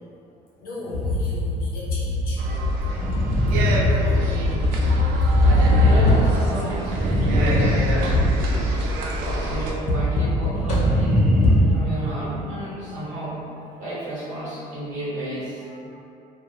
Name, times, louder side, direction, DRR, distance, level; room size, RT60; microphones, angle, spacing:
voice 1, 0.6-2.4 4.4-4.5 8.9-9.1 11.4-11.8 15.7-16.0, left 1 dB, 75° left, -6 dB, 0.9 m, -38 dB
sound 1, 0.9-6.6 8.1-9.0 9.9-11.6, left 2 dB, 50° left, 0.5 m, -22 dB
sound 2, 0.9-1.3 2.9-4.7 6.8-8.5 10.5-12.4, equal, 5° right, 0.4 m, -22 dB
sound 3, 2.4-9.7, right 1 dB, 80° right, 0.4 m, -27 dB
voice 2, 4.2-4.9 5.4-8.5 9.2-11.2 11.7-13.5 13.8-15.6, right 1 dB, 55° right, -10 dB, 1.3 m, -32 dB
2.4 x 2.1 x 2.8 m, 2.6 s
cardioid pair, 105°, 15 cm